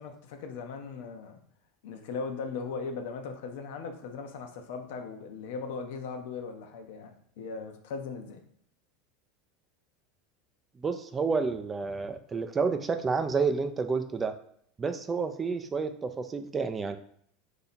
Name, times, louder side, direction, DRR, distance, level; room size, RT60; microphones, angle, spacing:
voice 1, 0.0-1.4 1.8-8.4, left 5 dB, 75° left, 5 dB, 0.6 m, -38 dB
voice 2, 10.8-14.3 14.8-17.0, right 4 dB, 25° right, 8 dB, 0.4 m, -30 dB
2.8 x 2.6 x 4.1 m, 0.65 s
hypercardioid pair, 100°, 0 cm